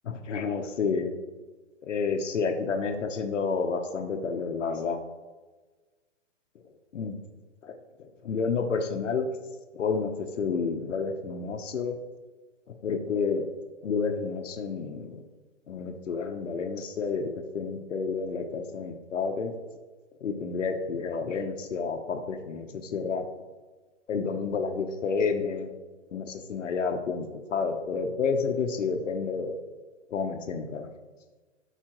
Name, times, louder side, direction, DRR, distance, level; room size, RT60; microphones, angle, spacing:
voice 1, 0.0-1.1 1.8-5.0 6.9-7.2 7.6-7.7 8.2-9.3 9.7-12.0 12.8-13.5 13.8-15.2 15.7-19.5 20.2-23.3 24.1-25.7 26.1-27.2 27.5-29.6 30.1-30.9, left 5 dB, 80° left, 5 dB, 1.0 m, -30 dB
12.5 x 5.0 x 3.0 m, 1.3 s
hypercardioid pair, 165°, 36 cm